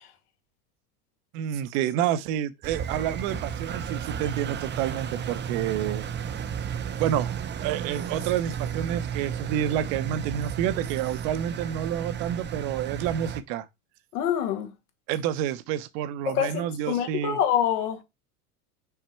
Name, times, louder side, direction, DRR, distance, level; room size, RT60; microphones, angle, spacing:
voice 1, 1.3-6.0 7.0-7.3 7.6-13.7 15.1-17.4, right 10 dB, 65° right, 0.9 m, -29 dB
Engine, 2.6-13.4, right 8 dB, 25° right, 0.7 m, -33 dB
voice 2, 14.1-14.7 16.3-18.0, left 9 dB, 80° left, 2.1 m, -26 dB
5.8 x 4.3 x 4.4 m
hypercardioid pair, 100°, 45 cm